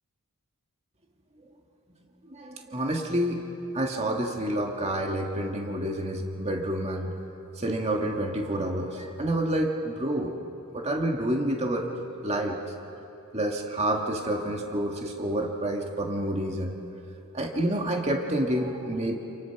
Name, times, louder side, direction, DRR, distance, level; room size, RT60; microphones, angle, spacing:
voice 1, 2.3-3.4 3.7-7.1 7.6-10.3 10.7-11.9 12.2-12.6 13.3-16.7 17.3-19.2, right 1 dB, 30° right, 1 dB, 1.9 m, -28 dB
29.5 x 28.0 x 5.9 m, 2.8 s
head